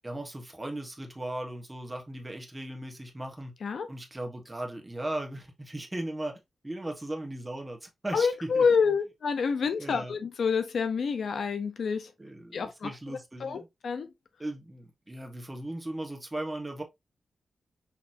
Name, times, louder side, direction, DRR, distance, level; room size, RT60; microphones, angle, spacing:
voice 1, 0.0-3.5 3.9-6.4 6.6-8.6 9.8-10.1 12.2-13.7 14.4-16.8, right 1 dB, 15° right, 1.2 m, -37 dB
voice 2, 8.1-12.1 12.5-14.1, left 5 dB, 75° left, 0.5 m, -28 dB
5.9 x 2.9 x 2.6 m
wide cardioid pair, 120°, 0 cm